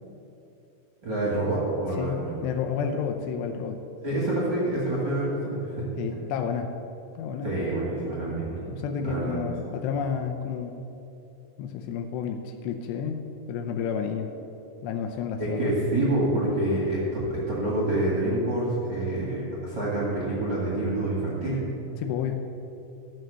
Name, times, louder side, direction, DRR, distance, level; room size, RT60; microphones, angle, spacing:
voice 1, 1.0-2.3 4.0-5.9 7.4-8.6 9.0-9.3 15.4-21.6, right 1 dB, 55° right, -6 dB, 1.2 m, -27 dB
voice 2, 2.0-3.8 6.0-6.7 7.2-7.5 8.6-10.8 11.6-13.2 13.5-14.3 14.8-15.7 22.0-22.4, left 7 dB, 85° left, 4 dB, 2.4 m, -30 dB
14.0 x 6.4 x 6.8 m, 3.0 s
omnidirectional pair, 5.7 m